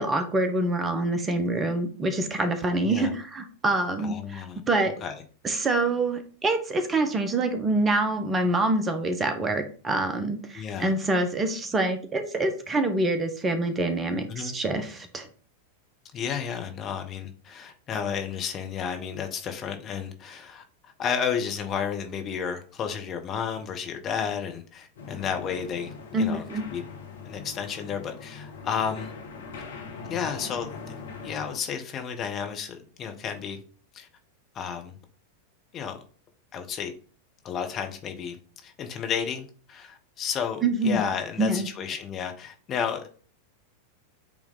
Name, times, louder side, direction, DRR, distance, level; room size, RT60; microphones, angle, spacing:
voice 1, 0.0-4.9 5.4-15.3 26.1-26.6 40.6-41.0 41.4-41.7, right 2 dB, 20° right, 1.0 m, -26 dB
voice 2, 4.0-4.6 5.0-5.1 10.5-10.9 14.3-14.5 16.1-26.4 26.7-26.8 27.2-29.1 30.1-33.6 33.9-34.1 34.5-34.9 35.7-36.0 36.5-36.9 37.4-38.4 38.6-43.1, left 7 dB, 30° left, 1.1 m, -32 dB
sound 1, 25.0-31.6, left 4 dB, 65° left, 1.4 m, -41 dB
8.3 x 3.4 x 4.0 m
figure-of-eight pair, 90°, 0 cm